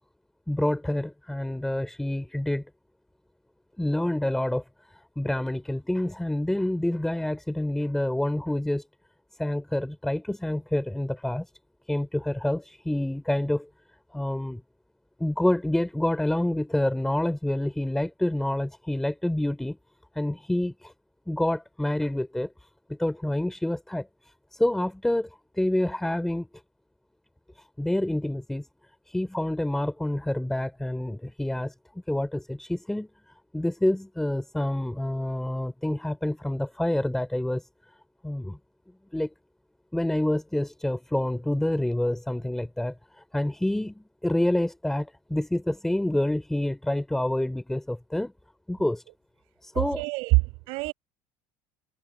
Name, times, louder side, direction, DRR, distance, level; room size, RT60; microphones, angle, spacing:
voice 1, 0.5-2.7 3.8-4.6 5.2-8.8 9.4-11.5 11.9-13.7 14.1-14.6 15.2-19.8 20.1-20.9 21.3-22.5 22.9-24.1 24.5-25.3 25.5-26.5 27.8-28.7 29.1-31.7 32.1-33.1 33.5-37.6 38.2-38.6 39.1-39.3 39.9-48.3 48.7-49.0 49.6-50.0, left 1 dB, 5° left, 3.1 m, -27 dB
voice 2, 49.7-50.9, right 27 dB, 70° right, 6.5 m, -25 dB
cardioid pair, 140°, 10 cm